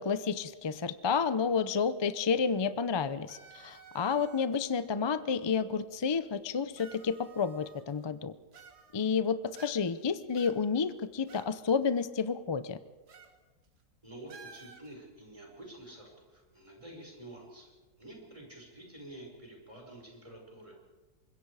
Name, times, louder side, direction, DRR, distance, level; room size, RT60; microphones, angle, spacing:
voice 1, 0.0-8.3 8.9-12.8, left 6 dB, 40° left, 13 dB, 0.3 m, -30 dB
sound 1, 3.3-4.6 5.6-5.7 6.7-8.0 8.5-9.2 9.6-10.0 10.3-11.5 11.8-11.9 13.1-13.4 13.6-13.8 14.3-14.9, right 6 dB, 85° right, 2.3 m, -53 dB
voice 2, 14.0-17.7 18.0-20.7, right 1 dB, 20° right, 0 dB, 5.6 m, -49 dB
24.5 x 21.5 x 4.9 m, 1.3 s
omnidirectional pair, 1.7 m